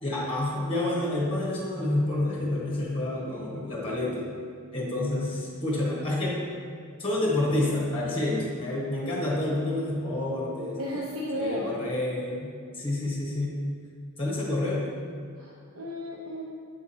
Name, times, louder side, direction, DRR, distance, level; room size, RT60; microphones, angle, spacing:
voice 1, 0.0-4.3 4.7-6.4 7.0-10.8 11.3-13.6 14.2-14.9, left 1 dB, 25° left, -5 dB, 1.5 m, -28 dB
voice 2, 10.8-11.7 15.4-16.4, equal, 70° right, -6 dB, 0.8 m, -33 dB
7.5 x 3.6 x 4.3 m, 2.2 s
head